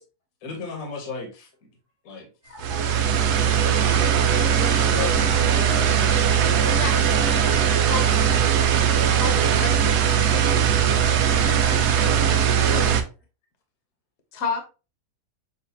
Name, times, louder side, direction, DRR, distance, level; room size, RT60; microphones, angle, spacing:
voice 1, 0.4-1.5 2.0-2.3 3.1-5.3 11.6-11.7 12.6-13.0, left 4 dB, 65° left, 3 dB, 1.4 m, -35 dB
voice 2, 2.4-3.3 4.9-7.0 7.4-7.8, left 3 dB, 90° left, 1 dB, 2.3 m, -38 dB
sound 1, 2.6-13.0, right 8 dB, 85° right, 1.2 m, -20 dB
voice 3, 6.7-8.6 9.2-10.0 10.3-10.7 11.6-12.2 12.7-13.0 14.3-14.6, left 4 dB, 50° left, 4 dB, 1.1 m, -33 dB
6.4 x 2.6 x 2.8 m, 0.32 s
omnidirectional pair, 1.7 m